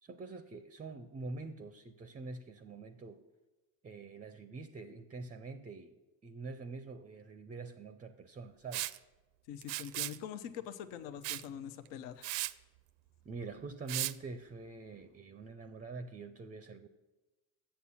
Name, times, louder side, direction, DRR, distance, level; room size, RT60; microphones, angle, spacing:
voice 1, 0.0-3.3 3.8-9.0 13.2-16.9, right 3 dB, 20° right, 11 dB, 0.5 m, -45 dB
Liquid, 8.7-9.0 9.6-10.2 11.2-11.5 11.9-12.0 12.2-12.5 13.9-14.1, right 17 dB, 70° right, 0.5 m, -36 dB
voice 2, 9.5-12.3, left 9 dB, 75° left, 10 dB, 0.8 m, -44 dB
7.3 x 6.8 x 7.1 m, 1.1 s
supercardioid pair, 85°, 45 cm